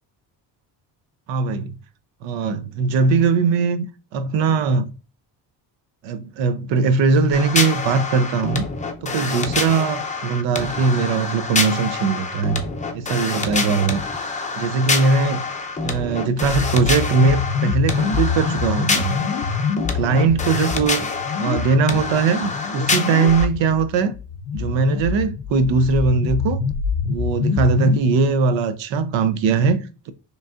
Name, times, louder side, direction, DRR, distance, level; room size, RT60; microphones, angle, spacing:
voice 1, 1.3-1.7 2.2-4.9 6.0-8.6 9.0-12.6 12.9-14.0 14.6-15.4 15.8-19.2 19.9-21.1 21.4-24.1 24.5-26.6 27.1-30.1, right 4 dB, 85° right, 0.7 m, -20 dB
sound 1, 7.3-23.4, left 4 dB, 15° left, 0.6 m, -26 dB
sound 2, 16.4-28.0, left 5 dB, 65° left, 0.6 m, -26 dB
5.1 x 3.1 x 2.4 m
cardioid pair, 120°, 44 cm